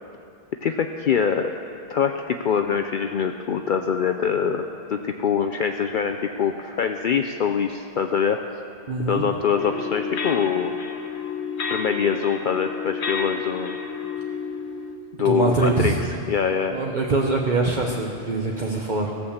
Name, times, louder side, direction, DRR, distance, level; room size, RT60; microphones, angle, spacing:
voice 1, 0.6-1.5 1.9-8.4 9.1-10.7 11.7-13.8 15.2-16.8, left 7 dB, 60° left, 6 dB, 0.6 m, -24 dB
voice 2, 8.9-9.2 15.2-16.0 16.7-19.1, right 3 dB, 50° right, -1 dB, 1.0 m, -23 dB
sound 1, 9.6-15.0, left 6 dB, 85° left, 1.1 m, -30 dB
16.0 x 6.8 x 7.1 m, 2.5 s
omnidirectional pair, 1.1 m